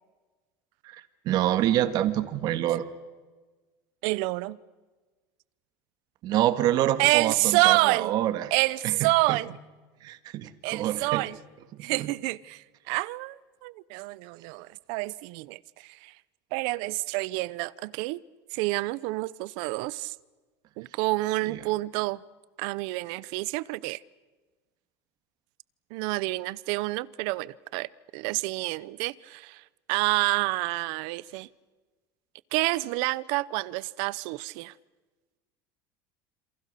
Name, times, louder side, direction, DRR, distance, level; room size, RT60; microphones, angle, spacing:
voice 1, 0.8-2.9 6.2-8.5 8.8-9.4 10.0-11.3 12.0-12.1 21.5-21.6, right 12 dB, 50° right, 1.8 m, -27 dB
voice 2, 4.0-4.6 7.0-8.1 8.5-9.5 10.6-11.4 11.8-16.1 16.5-18.2 18.5-20.1 20.8-22.2 22.6-24.0 25.9-29.6 29.9-31.5 32.5-34.7, right 21 dB, 70° right, 0.8 m, -28 dB
28.5 x 27.0 x 6.8 m
supercardioid pair, 140°, 9 cm